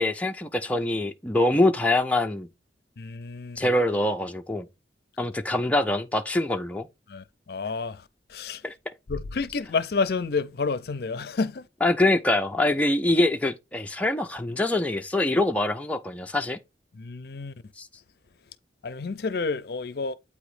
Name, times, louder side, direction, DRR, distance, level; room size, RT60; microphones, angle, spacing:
voice 1, 0.0-2.5 3.6-4.7 5.2-6.9 8.6-8.7 11.8-16.6 17.8-17.9, left 1 dB, 10° left, 0.4 m, -24 dB
voice 2, 3.0-3.7 7.1-8.6 9.1-11.7 16.9-17.5 18.8-20.1, left 4 dB, 60° left, 0.5 m, -30 dB
8.4 x 3.0 x 4.8 m
head